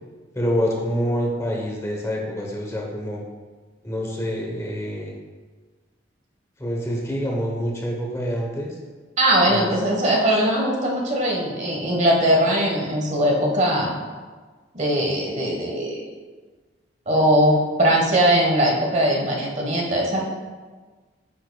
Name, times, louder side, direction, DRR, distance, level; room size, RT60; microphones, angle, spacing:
voice 1, 0.3-3.2 3.8-5.2 6.6-8.8 9.5-9.7, equal, 15° left, -1 dB, 0.9 m, -26 dB
voice 2, 9.2-13.9 14.7-16.0 17.1-20.2, right 1 dB, 40° right, -1 dB, 1.3 m, -20 dB
9.1 x 6.9 x 2.3 m, 1.4 s
head